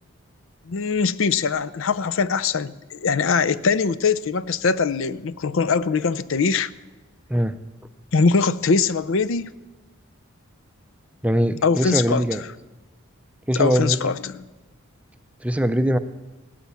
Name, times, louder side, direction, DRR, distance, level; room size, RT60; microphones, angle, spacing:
voice 1, 0.7-6.7 8.1-9.5 11.6-12.4 13.5-14.4, left 5 dB, 65° left, 14 dB, 0.5 m, -22 dB
voice 2, 11.2-12.4 13.5-14.0 15.4-16.0, equal, 5° right, 10 dB, 0.5 m, -21 dB
17.0 x 11.5 x 7.0 m, 1.1 s
head